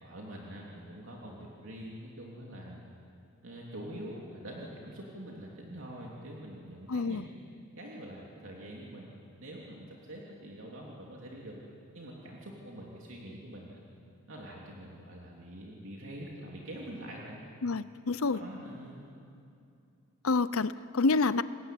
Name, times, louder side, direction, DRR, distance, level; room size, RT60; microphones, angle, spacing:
voice 1, 0.0-2.8 3.4-7.2 7.8-11.6 11.9-13.8 14.3-17.4 18.2-19.0, right 1 dB, 60° right, -3 dB, 3.2 m, -45 dB
voice 2, 6.9-7.2 17.6-18.4 20.2-21.4, left 3 dB, 70° left, 15 dB, 0.7 m, -28 dB
28.0 x 20.5 x 9.4 m, 2.6 s
head